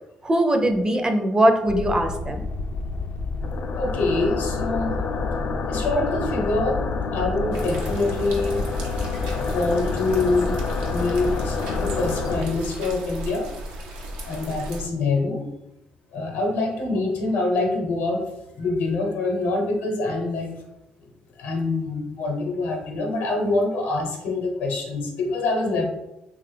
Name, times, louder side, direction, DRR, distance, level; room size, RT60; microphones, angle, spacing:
voice 1, 0.2-2.4, right 1 dB, 25° right, 5 dB, 0.5 m, -20 dB
sound 1, 1.7-12.4, left 4 dB, 55° left, 0.3 m, -28 dB
voice 2, 3.7-4.9 5.7-8.6 9.5-10.6 10.9-13.5 14.2-15.5 16.1-18.3 18.6-20.6 21.4-25.8, left 2 dB, 80° left, 2 dB, 0.8 m, -25 dB
sound 2, 7.5-14.8, right 1 dB, 90° right, 0.6 m, -35 dB
3.1 x 2.4 x 3.3 m, 0.93 s
supercardioid pair, 65°, 3 cm